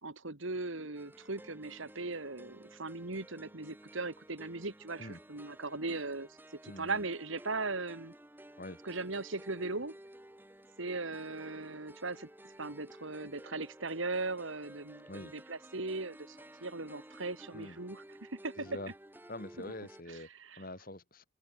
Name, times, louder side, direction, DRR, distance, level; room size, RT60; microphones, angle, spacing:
voice 1, 0.0-6.3 6.6-8.1 8.8-10.0 10.8-12.3 12.6-18.5 20.1-20.6, right 3 dB, 70° right, 2.0 m, -38 dB
sound 1, 1.0-20.0, right 1 dB, 10° right, 1.6 m, -54 dB
voice 2, 6.6-7.0 8.6-8.8 15.1-15.3 17.5-17.8 18.5-18.9 19.3-20.3 20.6-21.3, left 1 dB, 45° left, 3.4 m, -45 dB
open air
head